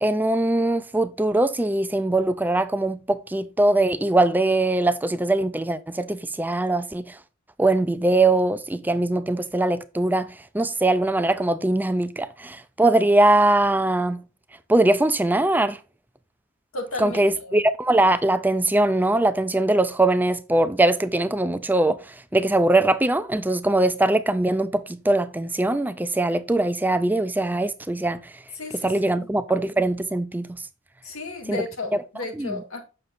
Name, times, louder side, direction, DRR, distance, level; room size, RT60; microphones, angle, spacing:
voice 1, 0.0-7.1 7.6-10.3 10.5-14.2 14.7-15.8 17.0-28.2 28.8-30.5 31.5-31.6 31.9-32.0 32.3-32.6, right 2 dB, 10° right, 0.4 m, -21 dB
voice 2, 16.7-17.6 28.6-29.3 31.0-32.8, left 2 dB, 80° left, 2.2 m, -33 dB
7.8 x 6.5 x 2.6 m
head